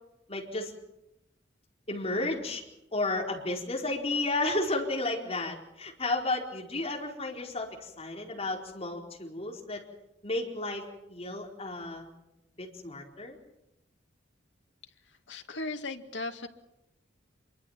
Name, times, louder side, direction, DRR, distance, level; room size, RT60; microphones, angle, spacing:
voice 1, 0.3-0.7 1.9-2.6 2.9-9.8 10.2-12.1 12.6-13.4, left 2 dB, 35° left, 0 dB, 4.6 m, -32 dB
voice 2, 15.0-16.5, left 2 dB, 70° left, 5 dB, 2.2 m, -37 dB
26.5 x 23.5 x 5.9 m, 0.88 s
head